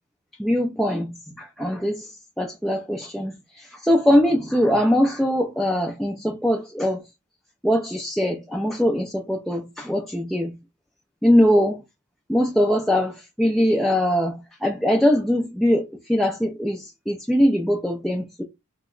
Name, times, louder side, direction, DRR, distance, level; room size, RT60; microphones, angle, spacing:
voice 1, 0.4-2.1 2.4-7.0 7.6-10.5 11.2-11.8 12.3-18.4, equal, ahead, 0.3 m, -22 dB
2.8 x 2.1 x 3.7 m
head